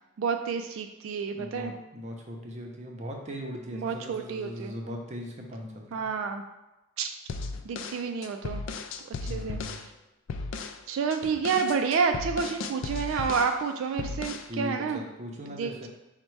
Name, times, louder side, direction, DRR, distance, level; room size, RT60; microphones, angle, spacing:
voice 1, 0.2-1.7 3.7-4.7 5.9-6.4 7.0-7.1 7.7-8.6 9.3-9.6 10.9-15.0 15.6-15.9, right 5 dB, 80° right, 6 dB, 0.3 m, -29 dB
voice 2, 1.3-6.1 9.2-9.8 14.4-15.9, equal, 35° right, 0 dB, 0.6 m, -39 dB
sound 1, 7.3-9.9 10.3-10.8 11.1-13.6 14.0-14.5, left 4 dB, 70° left, 0.3 m, -36 dB
5.2 x 2.2 x 4.5 m, 0.98 s
head